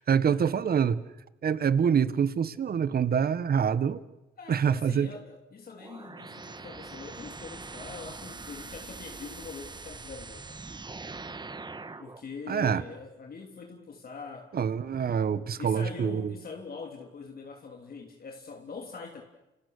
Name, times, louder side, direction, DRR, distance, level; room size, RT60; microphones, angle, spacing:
voice 1, 0.1-1.0 1.4-4.0 4.5-5.1 12.5-12.8 14.5-16.3, right 7 dB, 50° right, 15 dB, 1.5 m, -26 dB
voice 2, 4.4-10.6 12.0-14.7 15.6-19.2, left 4 dB, 50° left, 2 dB, 3.4 m, -43 dB
sound 1, 5.8-12.2, right 3 dB, 20° right, 1.7 m, -43 dB
29.0 x 29.0 x 6.7 m, 0.97 s
cardioid pair, 90°, 20 cm